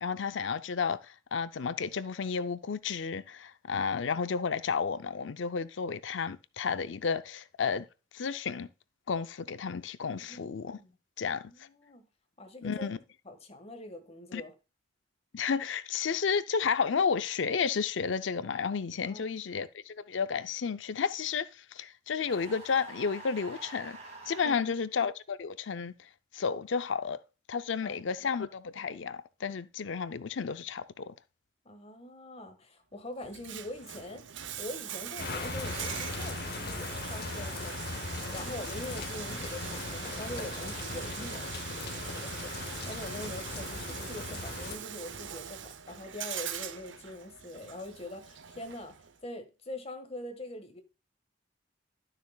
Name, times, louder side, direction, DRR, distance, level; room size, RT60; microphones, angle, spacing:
voice 1, 0.0-7.9 8.1-8.7 9.1-10.8 11.2-11.5 12.6-13.0 14.3-14.4 15.3-24.0 24.3-27.2 27.5-31.1, left 6 dB, 75° left, 0.5 m, -32 dB
voice 2, 10.1-10.4 10.8-11.0 11.3-12.1 12.4-12.9 13.2-14.5 19.0-19.4 24.4-24.7 27.8-27.9 31.6-34.2 34.6-49.0 49.2-50.8, left 1 dB, 35° left, 1.6 m, -44 dB
sound 1, 22.3-24.6, right 3 dB, 35° right, 4.3 m, -47 dB
Bathtub (filling or washing), 33.2-49.2, right 9 dB, 70° right, 0.7 m, -42 dB
sound 2, 35.2-44.8, left 3 dB, 55° left, 1.0 m, -38 dB
12.0 x 6.6 x 2.3 m
head